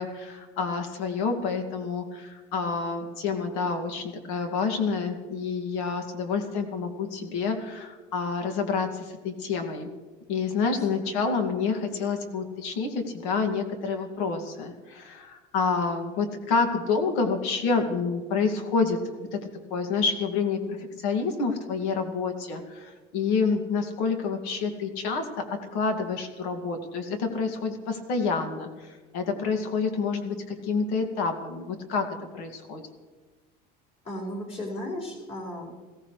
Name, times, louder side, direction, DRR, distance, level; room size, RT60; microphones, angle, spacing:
voice 1, 0.0-9.9 10.3-19.4 19.7-32.8, left 4 dB, 80° left, 4 dB, 2.3 m, -28 dB
voice 2, 10.8-11.1 34.0-35.7, left 1 dB, 30° left, -4 dB, 5.1 m, -35 dB
21.5 x 17.0 x 3.3 m, 1.3 s
cardioid pair, 170°, 20 cm